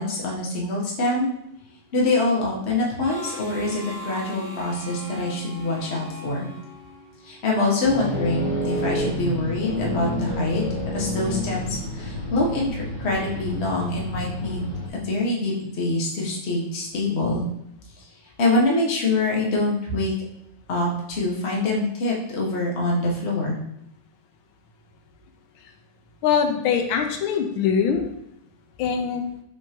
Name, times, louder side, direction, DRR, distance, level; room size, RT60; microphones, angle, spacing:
voice 1, 0.0-1.3 1.9-6.4 7.2-10.6 10.9-17.4 18.4-20.1 20.7-23.6, left 2 dB, 40° left, -3 dB, 1.1 m, -25 dB
Harmonica, 3.0-7.5, equal, 70° right, 2.2 m, -39 dB
sound 1, 7.8-14.9, left 1 dB, 65° left, 0.4 m, -29 dB
voice 2, 26.2-28.0 28.8-29.2, left 7 dB, 90° left, 4 dB, 1.4 m, -22 dB
5.2 x 3.5 x 2.9 m, 0.79 s
omnidirectional pair, 2.2 m